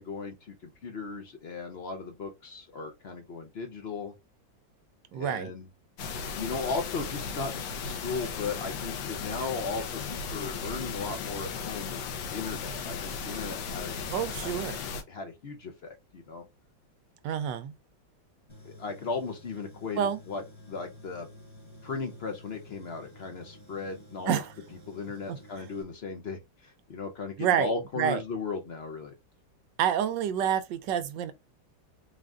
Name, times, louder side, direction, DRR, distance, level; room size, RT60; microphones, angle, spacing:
voice 1, 0.0-4.1 5.1-5.7 6.3-14.1 14.4-14.6 15.1-16.4 18.6-21.3 21.8-24.4 24.9-29.1, left 4 dB, 65° left, 0.6 m, -36 dB
voice 2, 5.1-5.5 14.1-14.8 17.2-17.7 20.0-20.2 24.3-24.5 25.3-25.4 27.4-27.7 28.0-28.2 29.8-31.3, right 9 dB, 80° right, 1.2 m, -28 dB
sound 1, 6.0-15.0, left 5 dB, 90° left, 1.5 m, -36 dB
Tools, 18.5-25.8, left 1 dB, 25° left, 0.7 m, -51 dB
3.9 x 2.5 x 3.3 m
omnidirectional pair, 2.0 m